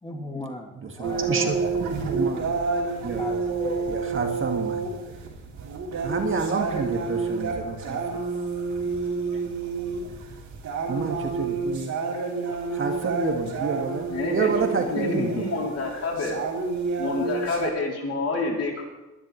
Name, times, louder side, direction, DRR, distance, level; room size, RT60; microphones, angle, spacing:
voice 1, 0.0-1.4 3.2-4.1, left 1 dB, 15° left, 2 dB, 2.3 m, -36 dB
voice 2, 0.8-2.5 3.0-3.2 3.9-4.8 6.0-8.2 10.9-11.9 12.7-15.4, right 4 dB, 45° right, 3 dB, 2.0 m, -29 dB
sound 1, 1.0-17.7, right 4 dB, 70° right, 3.6 m, -29 dB
voice 3, 14.1-16.4 17.0-18.8, left 3 dB, 55° left, -1 dB, 3.5 m, -28 dB
21.5 x 11.5 x 3.3 m, 1.1 s
cardioid pair, 90°, 30 cm